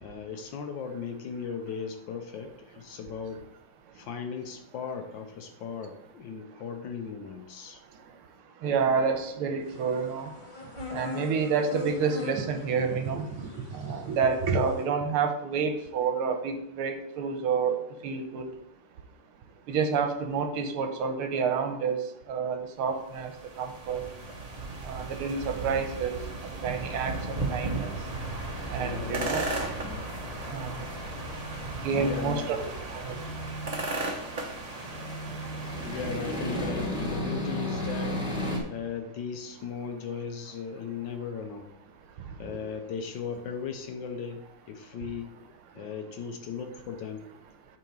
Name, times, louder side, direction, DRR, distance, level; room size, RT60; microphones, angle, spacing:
voice 1, 0.0-3.4 3.9-7.8 28.8-29.3 32.0-32.5 35.8-38.1 38.7-41.7 42.4-45.3 45.7-47.3, left 6 dB, 70° left, 6 dB, 1.3 m, -37 dB
voice 2, 8.6-10.3 10.9-18.5 19.7-22.0 22.3-23.3 23.6-24.0 24.8-26.2 26.6-27.9 28.7-29.5 30.5-30.8 31.8-32.6 32.9-33.2 42.5-42.6, right 5 dB, 80° right, 6 dB, 1.7 m, -29 dB
sound 1, 9.6-14.9, left 5 dB, 25° left, 1.2 m, -42 dB
sound 2, 23.0-37.0, right 3 dB, 50° right, 0.4 m, -36 dB
sound 3, 26.8-38.6, equal, 5° right, 0.7 m, -36 dB
8.5 x 3.9 x 4.6 m, 0.80 s
omnidirectional pair, 2.4 m